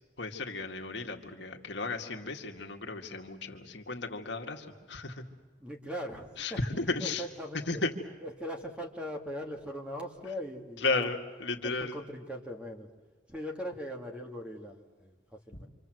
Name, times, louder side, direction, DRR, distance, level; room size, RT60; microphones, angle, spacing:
voice 1, 0.2-5.2 6.4-7.2 7.7-7.9 10.8-12.0, left 3 dB, 70° left, 3 dB, 2.2 m, -34 dB
voice 2, 5.6-6.6 7.0-7.8 8.2-11.1 11.6-12.9 13.3-15.7, equal, 5° right, 1 dB, 2.4 m, -40 dB
27.0 x 26.5 x 7.9 m, 1.3 s
head